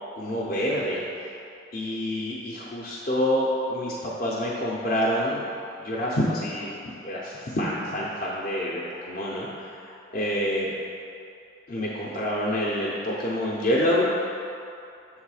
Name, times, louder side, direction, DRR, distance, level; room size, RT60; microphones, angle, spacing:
voice 1, 0.1-1.0 1.7-5.5 5.8-6.7 7.0-8.8 9.1-10.7 11.7-14.1, equal, 45° left, -6 dB, 0.6 m, -27 dB
7.4 x 3.2 x 4.8 m, 2.6 s
head